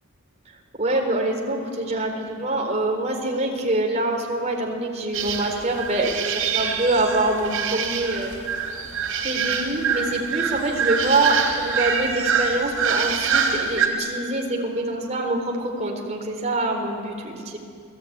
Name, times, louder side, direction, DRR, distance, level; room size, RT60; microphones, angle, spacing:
voice 1, 0.7-8.3 9.2-17.6, right 2 dB, 30° right, 1 dB, 4.1 m, -25 dB
sound 1, 5.1-13.9, right 6 dB, 80° right, 4.1 m, -25 dB
29.5 x 20.5 x 9.5 m, 2.4 s
head